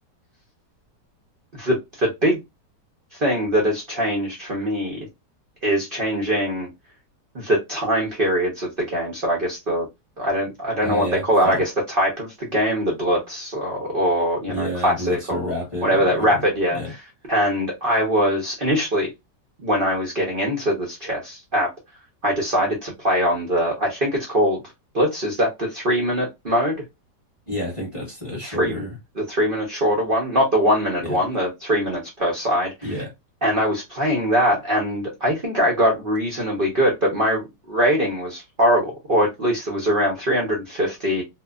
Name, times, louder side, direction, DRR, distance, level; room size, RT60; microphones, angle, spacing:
voice 1, 1.5-2.4 3.1-5.0 5.6-6.7 7.3-9.9 10.2-15.5 15.8-16.8 17.3-19.1 19.6-21.7 22.2-24.6 24.9-26.8 28.4-28.8 29.2-32.7 33.4-41.2, equal, 50° right, 0.6 m, -22 dB
voice 2, 10.8-11.6 14.5-16.4 16.7-16.9 27.5-29.0 31.0-31.2 32.8-33.1, equal, 20° left, 1.0 m, -30 dB
3.0 x 2.1 x 2.3 m
omnidirectional pair, 1.9 m